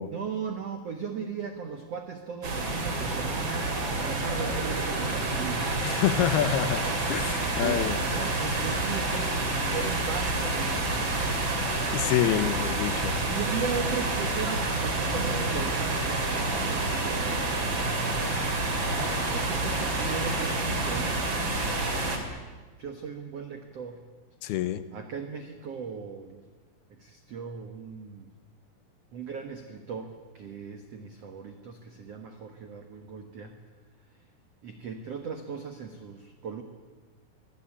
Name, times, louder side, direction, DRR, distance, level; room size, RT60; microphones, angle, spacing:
voice 1, 0.1-5.7 7.4-11.8 13.3-18.4 18.8-21.2 22.8-24.1 24.9-26.4 26.9-28.3 29.1-33.6 34.6-36.6, right 6 dB, 90° right, 7 dB, 1.4 m, -38 dB
sound 1, 2.4-22.2, right 2 dB, 30° right, 2.8 m, -28 dB
voice 2, 5.8-6.8 7.1-8.0 11.9-13.2 24.4-24.8, left 11 dB, 75° left, 14 dB, 2.6 m, -27 dB
23.0 x 17.5 x 9.9 m, 1.3 s
omnidirectional pair, 5.2 m